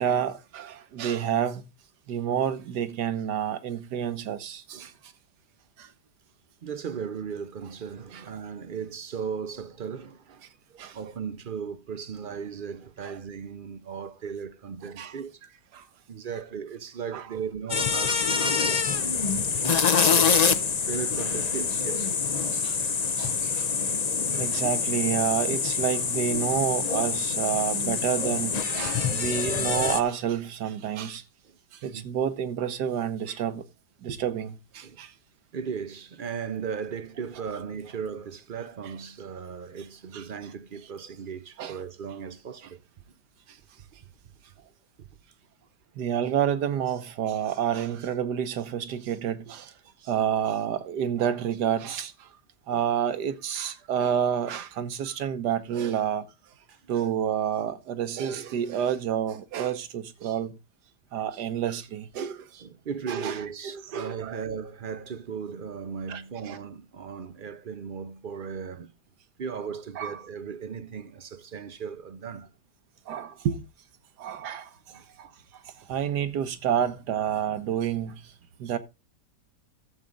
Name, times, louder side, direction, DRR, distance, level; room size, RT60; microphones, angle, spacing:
voice 1, 0.0-1.6 2.1-4.9 5.8-5.9 8.1-8.2 10.8-11.0 13.0-13.1 15.0-15.1 15.7-15.8 17.1-17.3 18.1-18.5 22.5-22.8 23.2-23.7 24.4-31.2 31.8-33.6 34.0-35.1 40.1-40.2 41.6-41.8 46.0-49.7 50.0-52.3 52.7-56.3 56.9-60.6 61.1-62.6 63.1-63.4 63.6-64.4 66.1-66.6 70.0-70.2 73.1-73.6 74.2-74.7 75.2-75.3 75.9-78.2 78.6-78.8, right 9 dB, 80° right, 1.5 m, -29 dB
voice 2, 6.6-15.4 16.1-18.9 19.5-20.5 20.9-22.2 28.9-29.0 31.8-32.1 34.8-35.0 35.5-42.8 45.0-45.1 52.7-52.8 56.7-56.9 62.6-68.9 69.4-72.5 74.9-75.1, right 6 dB, 55° right, 0.6 m, -37 dB
sound 1, 17.7-30.0, left 6 dB, 55° left, 0.4 m, -26 dB
13.0 x 7.4 x 3.9 m
omnidirectional pair, 1.8 m